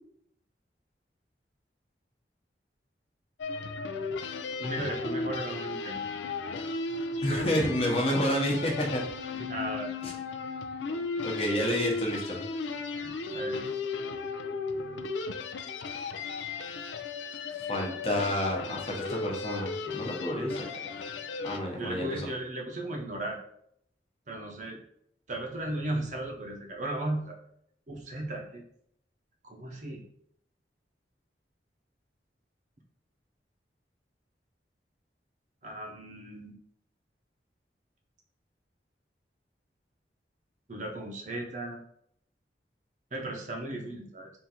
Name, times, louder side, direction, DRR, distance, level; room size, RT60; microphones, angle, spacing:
sound 1, 3.4-21.6, left 4 dB, 90° left, 0.4 m, -35 dB
voice 1, 4.6-6.0 7.3-7.5 9.3-9.9 13.0-13.6 21.8-23.4 24.3-24.8 25.3-27.4 27.9-28.6 29.4-30.0 35.6-36.6 40.7-41.8 43.1-44.3, right 1 dB, 45° right, 1 dB, 0.6 m, -36 dB
voice 2, 7.2-9.0 10.0-10.1 11.2-12.4 17.7-20.6 21.4-22.3, left 1 dB, 35° left, -1 dB, 0.9 m, -29 dB
3.6 x 2.6 x 4.2 m, 0.71 s
head